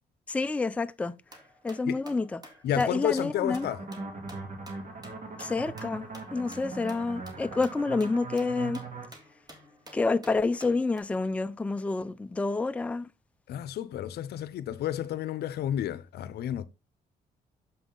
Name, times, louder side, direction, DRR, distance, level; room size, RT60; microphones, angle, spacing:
voice 1, 0.3-1.1 1.6-2.4 2.8-3.7 5.4-6.1 6.3-8.8 9.9-13.1, left 3 dB, 10° left, 0.4 m, -28 dB
sound 1, 1.3-11.0, equal, 25° right, 2.1 m, -52 dB
voice 2, 2.6-3.8 13.5-16.7, left 11 dB, 75° left, 0.6 m, -31 dB
sound 2, 3.4-9.1, right 3 dB, 45° right, 2.2 m, -40 dB
7.0 x 5.6 x 3.8 m
cardioid pair, 95°, 17 cm